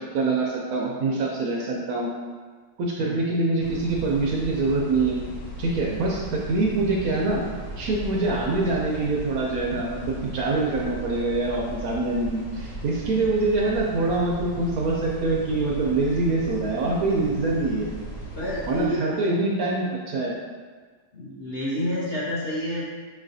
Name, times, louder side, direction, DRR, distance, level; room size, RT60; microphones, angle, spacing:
voice 1, 0.0-2.1 2.8-5.2 5.6-7.4 7.8-17.9 18.7-20.3, right 2 dB, 70° right, -2 dB, 0.9 m, -25 dB
sound 1, 3.6-18.9, right 1 dB, 80° left, 1.5 m, -37 dB
voice 2, 18.4-19.3 21.1-22.9, equal, 60° left, -8 dB, 0.6 m, -29 dB
5.3 x 3.2 x 2.6 m, 1.5 s
omnidirectional pair, 1.9 m